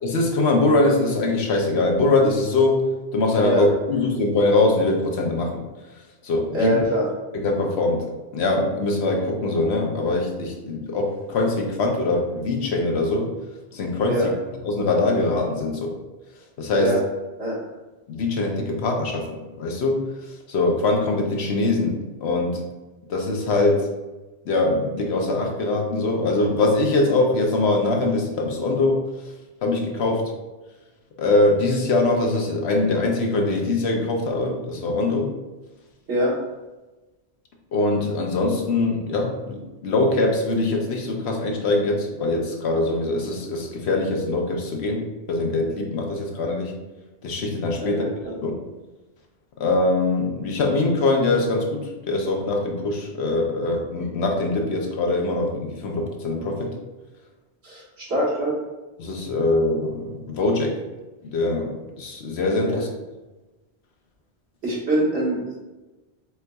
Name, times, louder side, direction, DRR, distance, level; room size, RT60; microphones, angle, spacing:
voice 1, 0.0-5.6 6.2-6.8 7.3-13.3 13.7-14.2 14.6-15.9 16.6-16.9 18.1-19.3 19.6-20.1 20.5-22.6 23.1-23.9 24.5-29.0 29.6-30.3 31.2-35.3 37.7-46.7 47.2-48.0 48.4-48.5 49.6-56.8 59.0-60.8 61.2-62.9, left 2 dB, 75° left, 1 dB, 1.0 m, -22 dB
voice 2, 6.5-7.1 14.1-14.3 16.8-17.0 17.4-17.5 36.1-36.3 47.8-48.1 57.6-58.5 62.6-62.8 64.6-65.5, right 1 dB, 85° right, -7 dB, 1.8 m, -23 dB
4.5 x 3.9 x 2.2 m, 1.1 s
omnidirectional pair, 1.1 m